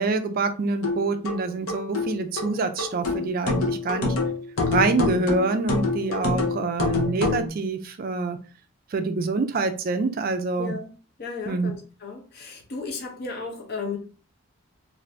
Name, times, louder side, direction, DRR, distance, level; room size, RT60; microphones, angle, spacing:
voice 1, 0.0-4.2 4.7-8.4 8.9-10.7 11.5-11.7, right 3 dB, 40° right, 0.3 m, -26 dB
sound 1, 0.8-7.5, left 3 dB, 80° left, 0.7 m, -26 dB
voice 2, 10.6-10.9 11.2-14.0, left 4 dB, 45° left, 0.6 m, -34 dB
2.5 x 2.5 x 3.2 m
head